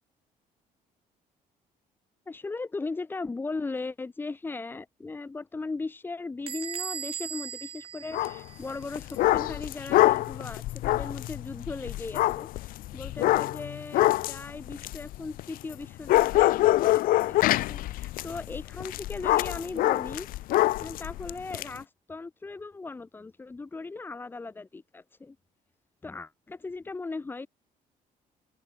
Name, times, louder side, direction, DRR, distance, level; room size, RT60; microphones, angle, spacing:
voice 1, 2.3-20.3 20.8-25.4 26.0-27.5, left 3 dB, 15° left, 4.5 m, -38 dB
Bell / Door, 6.5-9.0, right 9 dB, 40° right, 4.7 m, -38 dB
sound 1, 8.1-8.4 8.8-15.7 16.1-21.7, left 16 dB, 85° left, 2.1 m, -25 dB
cardioid pair, 180°, 14 cm